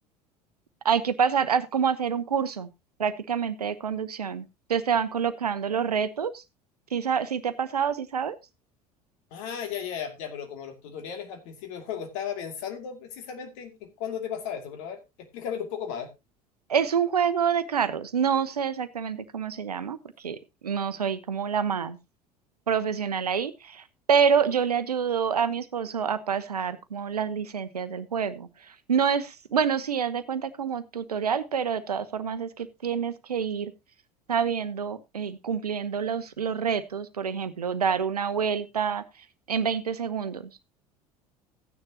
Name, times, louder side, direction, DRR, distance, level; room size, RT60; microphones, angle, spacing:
voice 1, 0.8-2.7 3.0-6.4 6.9-8.4 16.7-22.0 22.7-33.7 34.3-39.0 39.5-40.5, right 7 dB, 80° right, 14 dB, 0.8 m, -27 dB
voice 2, 9.3-16.1, left 8 dB, 55° left, 5 dB, 2.5 m, -35 dB
14.5 x 9.7 x 2.8 m, 0.23 s
figure-of-eight pair, 65°, 20 cm